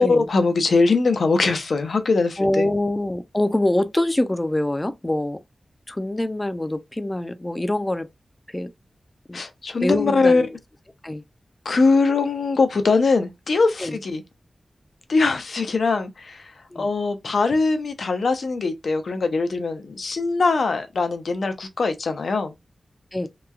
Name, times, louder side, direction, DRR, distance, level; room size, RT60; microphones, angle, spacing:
voice 1, 0.0-2.7 9.3-10.5 11.7-14.2 15.1-16.5 16.8-22.5, left 3 dB, 75° left, 0.5 m, -21 dB
voice 2, 2.4-5.4 5.9-8.1 8.5-8.7 9.3-9.4 9.8-10.5 11.0-11.2 13.8-14.0 16.7-16.9 23.1-23.3, left 1 dB, 20° left, 0.3 m, -24 dB
2.9 x 2.2 x 2.3 m
wide cardioid pair, 115°, 0 cm